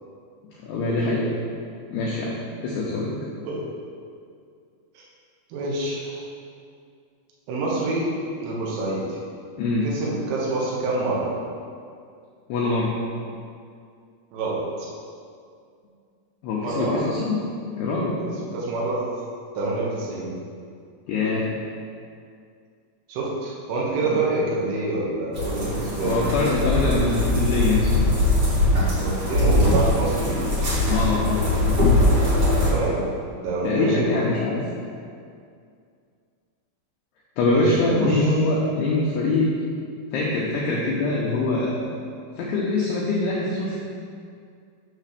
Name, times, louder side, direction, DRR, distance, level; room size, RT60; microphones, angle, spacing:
voice 1, 0.6-1.3 1.9-2.4 2.6-3.3 9.6-9.9 12.5-12.9 16.4-17.4 17.8-18.2 21.1-21.5 24.0-24.2 26.0-27.9 30.9-31.4 33.6-34.6 37.4-39.5 40.1-41.8 42.4-43.8, left 2 dB, 85° left, -5 dB, 2.3 m, -23 dB
voice 2, 5.5-6.2 7.5-8.1 8.4-9.1 9.8-11.3 14.3-14.9 16.6-17.0 18.5-19.0 19.6-20.3 23.1-26.3 29.0-30.5 32.7-33.0 33.4-34.2 37.5-38.4, right 2 dB, 80° right, -5 dB, 4.0 m, -26 dB
sound 1, 25.3-32.7, left 1 dB, 45° right, 1.9 m, -21 dB
9.7 x 3.3 x 6.6 m, 2.3 s
omnidirectional pair, 5.8 m